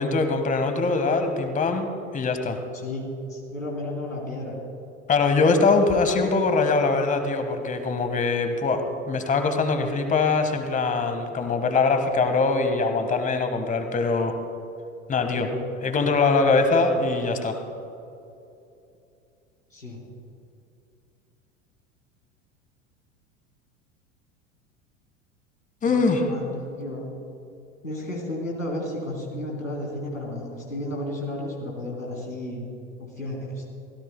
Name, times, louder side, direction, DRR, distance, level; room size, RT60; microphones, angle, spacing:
voice 1, 0.0-1.9 2.1-2.6 5.1-14.3 15.1-15.5 15.8-17.6 25.8-26.2, left 4 dB, 20° left, 7 dB, 1.5 m, -22 dB
voice 2, 2.7-4.5 15.3-15.5 19.7-20.0 25.9-27.1 27.8-32.7 33.0-33.6, left 1 dB, 85° left, -2 dB, 3.4 m, -33 dB
24.5 x 17.0 x 2.2 m, 2.7 s
figure-of-eight pair, 80°, 39 cm